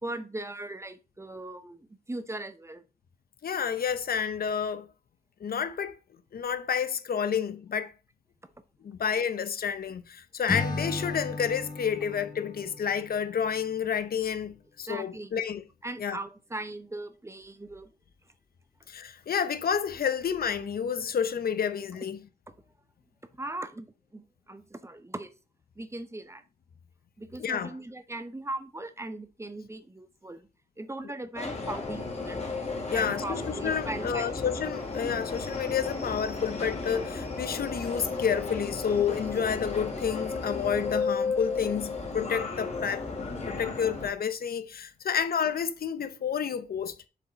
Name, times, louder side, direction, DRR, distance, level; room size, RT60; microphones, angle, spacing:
voice 1, 0.0-2.8 8.4-8.5 14.9-15.4 15.8-17.9 23.3-25.4 25.8-26.4 27.2-30.5 30.8-32.4 32.9-34.4, right 2 dB, 15° right, 0.7 m, -39 dB
voice 2, 3.4-4.9 5.4-6.0 6.3-7.9 8.8-15.6 16.0-16.2 18.9-22.2 27.4-27.7 32.9-43.0 43.5-46.9, left 7 dB, 70° left, 0.7 m, -30 dB
Acoustic guitar / Strum, 10.5-13.8, left 3 dB, 25° left, 1.0 m, -35 dB
Subway metro underground, 31.3-44.1, left 3 dB, 40° left, 2.9 m, -34 dB
7.2 x 4.5 x 4.0 m
cardioid pair, 90°, 16 cm